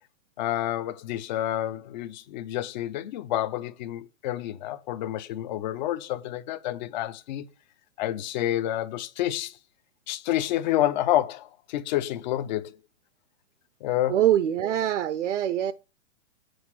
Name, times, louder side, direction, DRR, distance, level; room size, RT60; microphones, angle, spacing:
voice 1, 0.4-7.5 8.0-9.6 10.1-12.8 13.8-14.2, left 13 dB, 35° left, 0.8 m, -29 dB
voice 2, 14.1-15.7, right 11 dB, 70° right, 0.8 m, -24 dB
8.0 x 3.8 x 6.2 m
hypercardioid pair, 145°, 37 cm